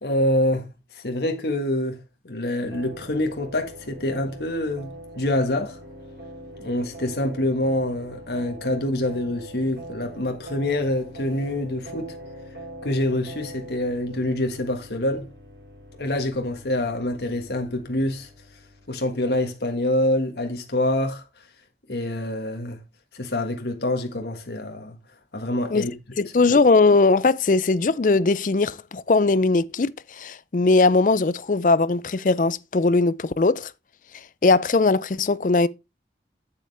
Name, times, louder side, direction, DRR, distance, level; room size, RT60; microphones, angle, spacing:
voice 1, 0.0-0.7 0.9-4.9 5.2-5.8 6.6-12.2 12.8-15.3 16.0-18.3 18.9-21.2 21.9-22.8 23.1-25.0 25.3-25.9, left 1 dB, 70° left, 1.6 m, -26 dB
sound 1, 2.6-19.4, right 1 dB, 80° right, 4.6 m, -42 dB
voice 2, 26.2-33.7 34.4-35.7, left 3 dB, 45° left, 0.4 m, -20 dB
8.4 x 7.7 x 3.3 m
head